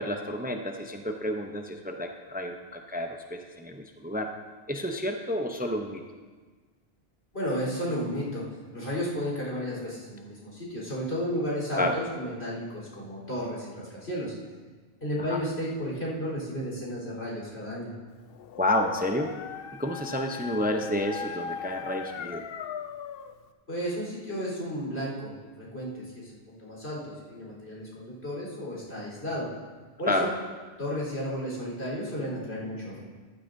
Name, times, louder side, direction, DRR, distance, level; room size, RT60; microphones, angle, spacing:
voice 1, 0.0-4.3 4.7-6.0 11.8-12.0 15.3-15.4 18.6-19.3 19.7-22.4 30.1-30.3, left 1 dB, 10° right, 4 dB, 0.5 m, -30 dB
voice 2, 7.3-8.4 8.7-14.3 15.0-17.9 23.7-29.5 30.0-30.3 30.8-33.0, equal, 90° left, -5 dB, 4.2 m, -33 dB
Dog, 18.3-23.4, left 6 dB, 70° left, 0.8 m, -39 dB
14.0 x 12.0 x 2.6 m, 1.4 s
omnidirectional pair, 1.0 m